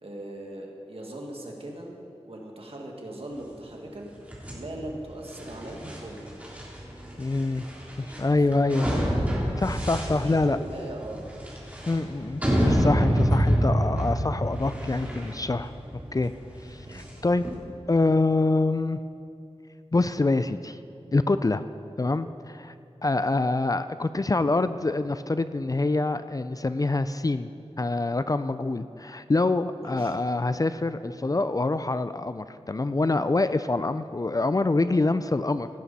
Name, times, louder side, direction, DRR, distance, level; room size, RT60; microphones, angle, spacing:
voice 1, 0.0-4.1 4.5-6.3 8.5-9.2 10.1-11.3 16.9-17.1 23.1-23.4 29.8-30.1, right 1 dB, 60° right, 0 dB, 2.0 m, -40 dB
sound 1, 4.3-17.5, equal, 15° right, 3.3 m, -28 dB
voice 2, 7.2-7.6 8.0-8.9 9.6-10.6 11.9-15.7 16.1-16.3 16.7-17.4 17.9-19.0 19.9-20.8 21.1-21.6 22.0-22.7 23.0-27.5 27.8-35.7, left 2 dB, 35° left, 12 dB, 0.4 m, -25 dB
17.0 x 11.0 x 4.2 m, 2.6 s
wide cardioid pair, 75°, 11 cm